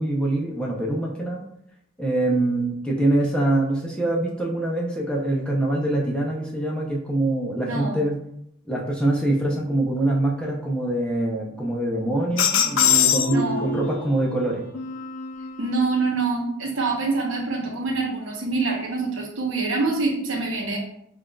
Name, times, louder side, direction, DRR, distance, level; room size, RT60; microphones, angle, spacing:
voice 1, 0.0-1.4 2.0-8.2 8.7-14.6, right 1 dB, 5° left, -3 dB, 0.5 m, -24 dB
voice 2, 7.6-8.0 13.3-13.7 15.6-20.8, right 3 dB, 80° right, 0 dB, 0.9 m, -25 dB
sound 1, 12.4-14.1 14.7-15.9, left 8 dB, 75° left, 0.4 m, -23 dB
5.5 x 2.5 x 2.2 m, 0.74 s
head